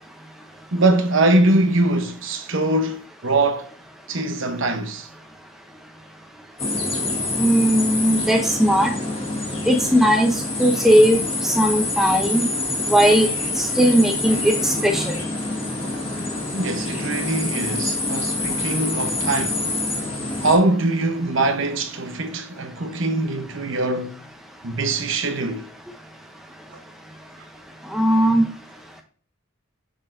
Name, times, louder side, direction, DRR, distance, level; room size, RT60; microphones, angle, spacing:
voice 1, 0.7-3.7 4.1-5.1 16.5-19.6 20.4-24.2 24.6-25.6, right 2 dB, 60° right, 0.9 m, -22 dB
sound 1, 6.6-20.5, left 2 dB, 25° left, 1.6 m, -26 dB
voice 2, 7.4-8.9 9.7-10.3 10.6-11.2 11.4-12.5 12.9-13.3 13.6-15.1 27.9-28.4, equal, ahead, 0.7 m, -17 dB
6.5 x 6.2 x 2.6 m
head